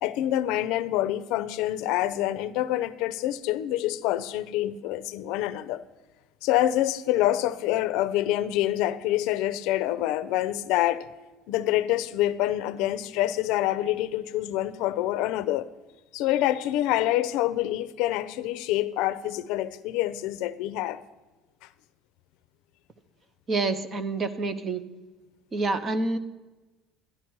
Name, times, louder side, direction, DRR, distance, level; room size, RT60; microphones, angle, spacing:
voice 1, 0.0-5.8 6.4-11.1 11.5-15.7 16.1-21.0, left 14 dB, 75° left, 0.5 m, -26 dB
voice 2, 23.5-24.8 25.5-26.2, right 3 dB, 25° right, 0.7 m, -27 dB
12.0 x 11.0 x 4.6 m
cardioid pair, 165°, 0 cm